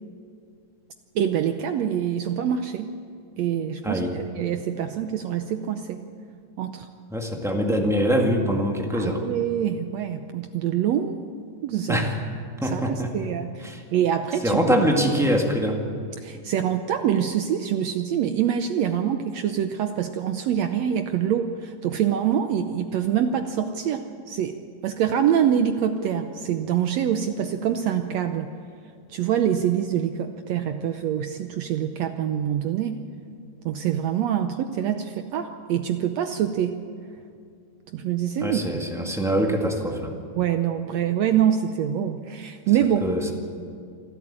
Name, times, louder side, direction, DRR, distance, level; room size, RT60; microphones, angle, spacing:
voice 1, 1.1-2.9 3.4-6.0 6.6-6.9 8.9-11.2 11.6-12.0 12.6-14.6 16.2-24.6 24.8-28.5 29.1-33.0 33.6-36.8 37.9-38.8 40.4-43.0, right 9 dB, 80° right, 7 dB, 1.5 m, -25 dB
voice 2, 3.8-4.2 7.1-9.3 11.9-12.2 12.6-13.3 13.6-13.8 14.4-15.8 38.4-40.1 43.0-43.3, equal, ahead, 1 dB, 1.1 m, -23 dB
26.5 x 12.5 x 8.9 m, 2.2 s
omnidirectional pair, 3.9 m